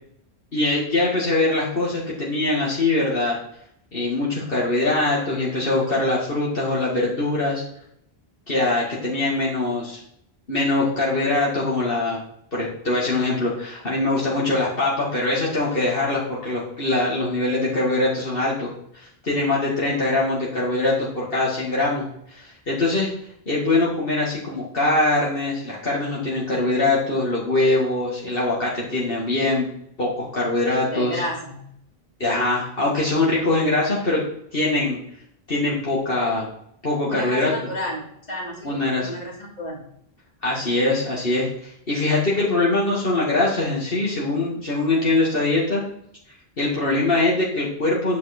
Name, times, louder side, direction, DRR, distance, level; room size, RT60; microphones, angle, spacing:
voice 1, 0.5-3.4 3.9-7.6 8.5-10.0 10.5-12.2 12.5-23.1 23.5-29.7 30.0-31.2 32.2-34.2 34.5-35.0 35.5-36.5 36.8-37.5 38.6-39.1 40.4-45.8 46.6-48.2, left 2 dB, 65° left, -5 dB, 2.4 m, -22 dB
voice 2, 30.9-31.6 37.1-39.8, left 1 dB, 45° left, -2 dB, 2.9 m, -32 dB
9.7 x 7.5 x 4.4 m, 0.70 s
omnidirectional pair, 1.0 m